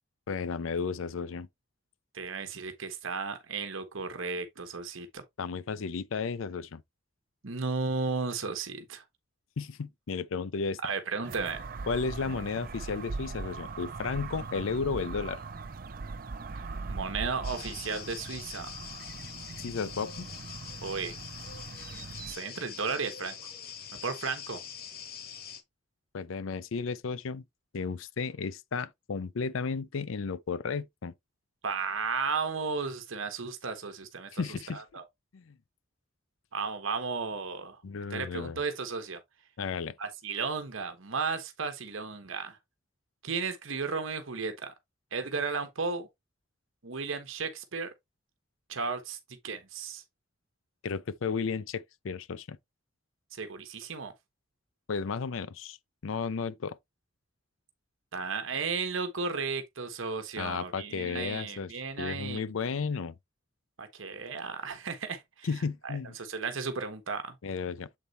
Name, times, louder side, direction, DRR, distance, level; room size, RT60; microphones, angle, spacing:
voice 1, 0.3-1.5 5.4-6.8 9.6-10.8 11.9-15.4 19.6-20.3 26.1-27.4 27.7-31.1 34.3-34.8 35.3-35.5 37.8-38.6 39.6-39.9 50.8-52.6 54.9-55.8 56.0-56.8 60.4-63.1 65.4-66.2 67.4-67.9, left 5 dB, 90° left, 0.5 m, -33 dB
voice 2, 2.1-5.2 7.4-9.0 10.8-11.6 16.9-18.7 20.8-21.2 22.3-23.4 24.0-24.6 31.6-34.4 34.7-35.0 36.5-37.8 38.1-39.2 40.0-42.6 43.2-44.7 45.1-46.1 46.8-47.9 48.7-49.2 49.4-50.0 53.3-54.1 58.1-62.5 63.8-65.5 65.8-67.3, right 4 dB, 90° right, 1.1 m, -34 dB
sound 1, 11.2-22.3, right 4 dB, 45° right, 0.5 m, -40 dB
sound 2, 17.4-25.6, left 8 dB, 50° left, 1.1 m, -44 dB
7.4 x 4.0 x 3.2 m
head